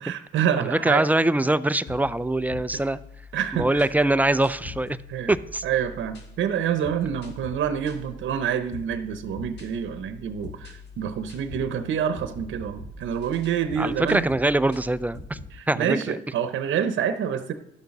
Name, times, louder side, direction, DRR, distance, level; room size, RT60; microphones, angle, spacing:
voice 1, 0.0-1.0 2.7-2.8 3.3-3.9 5.1-5.3 5.6-14.3 15.5-17.5, right 8 dB, 75° right, 9 dB, 0.9 m, -27 dB
voice 2, 0.7-3.0 3.5-5.0 5.3-5.6 13.8-15.4 15.7-16.1, right 1 dB, 10° right, 15 dB, 0.4 m, -23 dB
sound 1, 1.9-15.6, left 2 dB, 60° left, 2.2 m, -43 dB
11.5 x 6.5 x 5.9 m, 0.81 s
cardioid pair, 90°, 20 cm